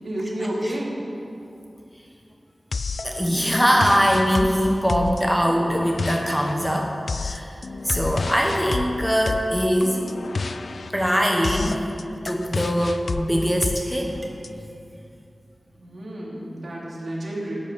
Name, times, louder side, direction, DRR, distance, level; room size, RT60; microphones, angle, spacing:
voice 1, 0.0-1.0 15.8-17.6, right 1 dB, 65° right, -5 dB, 3.3 m, -30 dB
sound 1, 2.7-14.5, left 4 dB, 70° left, 0.4 m, -31 dB
voice 2, 3.0-7.5 7.8-10.1 10.9-11.8 12.2-14.3, equal, ahead, 0 dB, 1.2 m, -22 dB
13.5 x 9.2 x 6.2 m, 2.6 s
wide cardioid pair, 85°, 0 cm